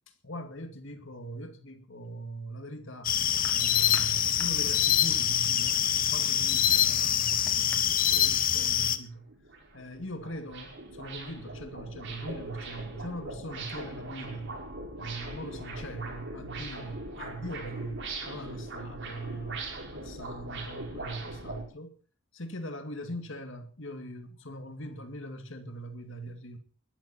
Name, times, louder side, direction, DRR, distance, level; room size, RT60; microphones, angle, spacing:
voice 1, 0.2-3.1 3.5-9.3 9.7-14.6 15.0-22.0 22.3-26.6, right 1 dB, 60° left, 2.3 m, -41 dB
sound 1, 3.0-9.0, left 10 dB, 40° left, 1.0 m, -25 dB
sound 2, 3.4-4.9 5.6-8.3, left 1 dB, 10° left, 1.8 m, -47 dB
sound 3, 8.7-8.8 9.3-21.6, right 2 dB, 55° right, 5.4 m, -41 dB
20.5 x 12.5 x 4.4 m
head